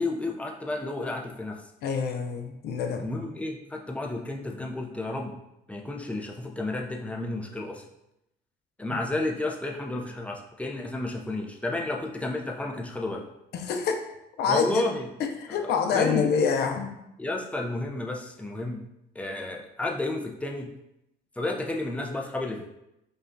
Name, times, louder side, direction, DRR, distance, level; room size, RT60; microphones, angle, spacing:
voice 1, 0.0-1.6 3.0-5.4 5.7-7.8 8.8-13.2 14.5-15.1 15.9-16.3 17.2-18.8 19.2-20.7 21.4-22.7, left 2 dB, 10° left, 0 dB, 0.4 m, -31 dB
voice 2, 1.8-3.1 13.5-14.0 14.4-14.8 15.2-17.0, left 6 dB, 70° left, 5 dB, 0.5 m, -26 dB
5.1 x 2.3 x 2.6 m, 0.85 s
cardioid pair, 110°, 17 cm